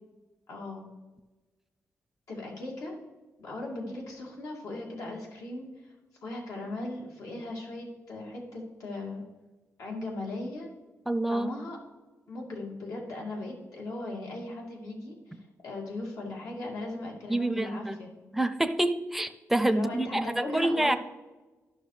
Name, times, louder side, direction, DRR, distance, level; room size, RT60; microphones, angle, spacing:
voice 1, 0.5-0.9 2.3-2.9 3.4-5.9 6.2-9.2 9.8-10.7 11.3-11.8 12.3-18.1 19.7-21.0, left 2 dB, 90° left, -2 dB, 2.1 m, -38 dB
voice 2, 11.1-11.5 17.3-18.0 18.3-21.0, right 1 dB, 5° right, 10 dB, 0.5 m, -27 dB
13.0 x 5.9 x 3.2 m, 1.2 s
wide cardioid pair, 150°, 5 cm